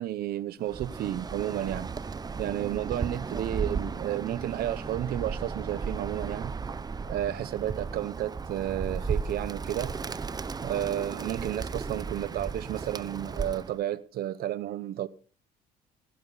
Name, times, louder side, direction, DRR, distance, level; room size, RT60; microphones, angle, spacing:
voice 1, 0.0-1.9 2.4-6.6 7.1-9.9 10.6-15.1, right 12 dB, 65° right, 0.8 m, -32 dB
Bird, 0.6-13.8, right 5 dB, 25° right, 0.7 m, -35 dB
17.0 x 11.5 x 4.0 m
cardioid pair, 110°, 17 cm